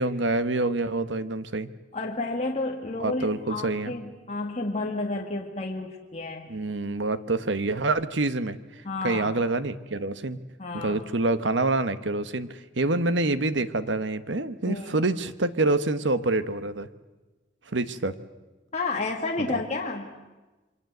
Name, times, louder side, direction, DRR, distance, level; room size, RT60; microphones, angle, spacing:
voice 1, 0.0-1.7 3.0-3.9 6.5-10.4 10.7-16.9 17.7-18.1 19.4-19.6, right 2 dB, 75° right, 12 dB, 1.2 m, -27 dB
voice 2, 1.9-6.5 8.8-9.3 10.6-11.0 14.7-14.9 18.7-20.1, left 2 dB, 35° left, 0 dB, 1.8 m, -31 dB
28.0 x 24.0 x 8.0 m, 1.2 s
head